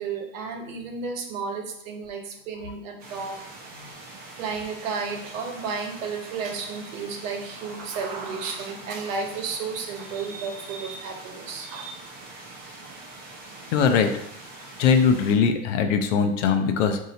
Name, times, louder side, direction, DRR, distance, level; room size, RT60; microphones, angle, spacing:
voice 1, 0.0-3.4 3.7-3.9 4.3-11.9, right 5 dB, 70° right, 3 dB, 1.0 m, -33 dB
sound 1, 3.0-15.4, right 2 dB, 20° right, 0.9 m, -43 dB
voice 2, 13.7-14.1 14.8-17.0, left 6 dB, 65° left, 7 dB, 0.6 m, -20 dB
5.1 x 2.7 x 2.8 m, 0.76 s
supercardioid pair, 140°, 40 cm